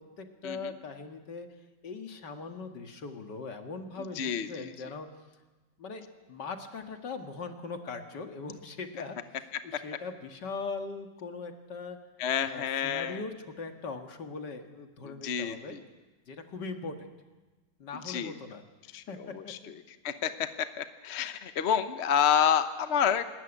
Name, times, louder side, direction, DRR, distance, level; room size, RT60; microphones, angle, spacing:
voice 1, 0.2-1.5 1.8-5.1 5.8-9.2 9.6-12.0 12.5-15.8 16.3-17.1 17.8-18.6 19.1-19.2 19.4-19.7, left 4 dB, 60° left, 5 dB, 2.3 m, -40 dB
voice 2, 4.0-4.7 12.2-13.2 15.0-15.8 18.0-18.3 18.9-23.2, left 8 dB, 45° left, 10 dB, 0.9 m, -29 dB
26.5 x 13.5 x 9.9 m, 1.2 s
omnidirectional pair, 2.1 m